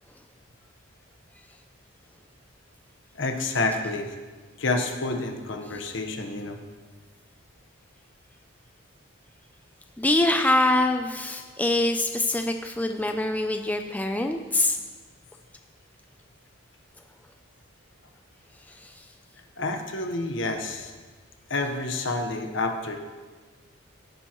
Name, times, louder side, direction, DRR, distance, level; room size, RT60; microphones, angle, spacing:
voice 1, 3.1-4.1 4.6-6.6 19.6-20.9 21.5-23.0, left 2 dB, 65° left, 5 dB, 1.1 m, -29 dB
voice 2, 10.0-14.8, left 2 dB, 10° left, 5 dB, 0.4 m, -24 dB
16.5 x 9.2 x 3.0 m, 1.4 s
head